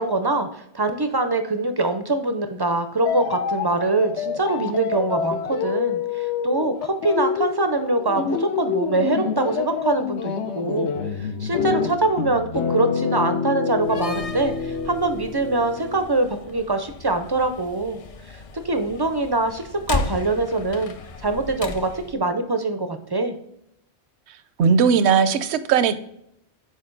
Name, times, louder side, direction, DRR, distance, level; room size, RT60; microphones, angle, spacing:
voice 1, 0.0-10.9 11.2-18.0 18.3-18.4 18.6-20.9 21.2-23.3, right 2 dB, 40° right, 8 dB, 0.3 m, -24 dB
sound 1, 3.0-16.0, left 6 dB, 85° left, 0.9 m, -27 dB
Slam, 13.8-22.2, left 3 dB, 50° left, 0.4 m, -35 dB
voice 2, 24.6-25.9, right 6 dB, 75° right, 13 dB, 0.9 m, -18 dB
6.5 x 4.6 x 3.8 m, 0.75 s
omnidirectional pair, 1.1 m